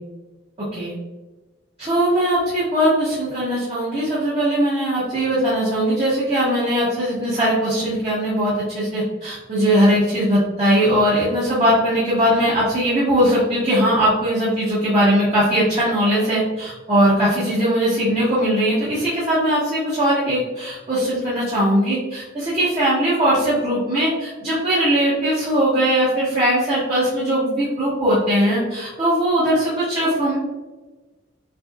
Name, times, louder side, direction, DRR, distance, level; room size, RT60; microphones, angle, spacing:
voice 1, 1.8-30.3, equal, 30° right, -11 dB, 1.4 m, -20 dB
6.6 x 2.6 x 2.3 m, 1.2 s
head